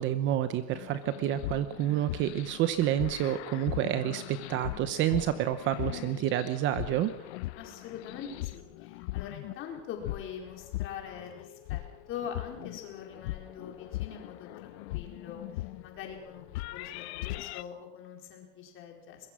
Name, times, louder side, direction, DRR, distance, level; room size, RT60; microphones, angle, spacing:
voice 1, 0.0-7.1, right 12 dB, 30° right, 12 dB, 0.9 m, -29 dB
sound 1, 0.7-17.6, left 18 dB, 60° left, 0.9 m, -40 dB
voice 2, 7.6-16.5 16.7-19.3, left 8 dB, 35° left, 2 dB, 4.7 m, -43 dB
23.0 x 21.5 x 6.2 m, 0.89 s
supercardioid pair, 170°, 36 cm